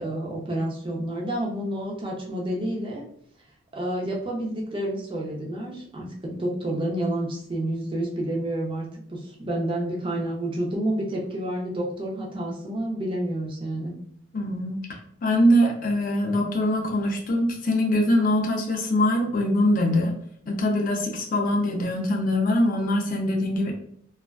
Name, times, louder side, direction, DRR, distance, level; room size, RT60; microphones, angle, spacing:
voice 1, 0.0-3.0 3.7-13.9, right 1 dB, 25° right, -1 dB, 0.5 m, -29 dB
voice 2, 14.3-14.8 15.2-20.1 20.5-23.7, left 1 dB, 40° left, 2 dB, 0.5 m, -23 dB
2.3 x 2.3 x 2.2 m, 0.65 s
head